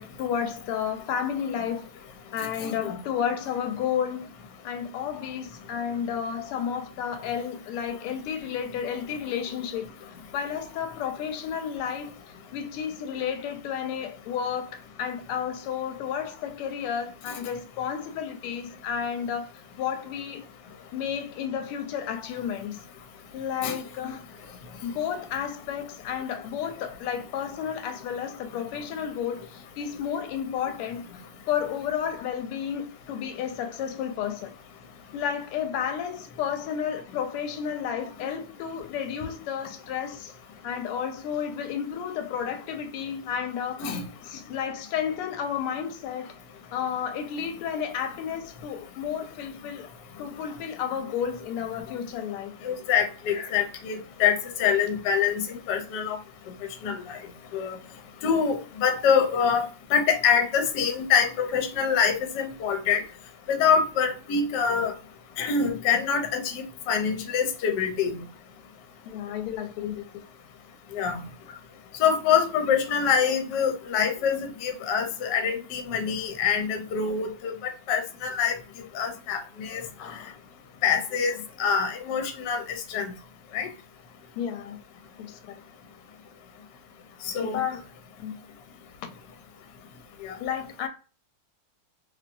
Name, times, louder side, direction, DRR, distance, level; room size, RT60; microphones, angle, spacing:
voice 1, 0.0-1.8 2.3-4.3 4.6-9.9 10.3-12.1 12.5-19.5 19.8-20.4 20.9-22.8 23.3-24.2 24.8-31.0 31.5-34.5 35.1-40.3 40.6-43.8 44.2-46.3 46.7-49.9 50.2-52.5 53.3-53.5 69.1-70.2 71.5-71.6 80.0-80.4 84.4-84.8 85.2-85.6 87.4-87.8 88.2-88.3 90.4-90.9, left 8 dB, 90° left, 1.5 m, -32 dB
voice 2, 2.6-3.0 23.6-23.8 43.8-44.0 52.6-56.2 56.8-57.2 57.5-57.8 58.2-63.0 63.5-64.9 65.4-68.2 70.9-71.2 72.0-78.6 78.9-79.8 80.8-83.1 83.5-83.7 87.2-87.6 90.2-90.3, left 7 dB, 65° left, 1.2 m, -25 dB
3.0 x 2.9 x 2.6 m
omnidirectional pair, 2.4 m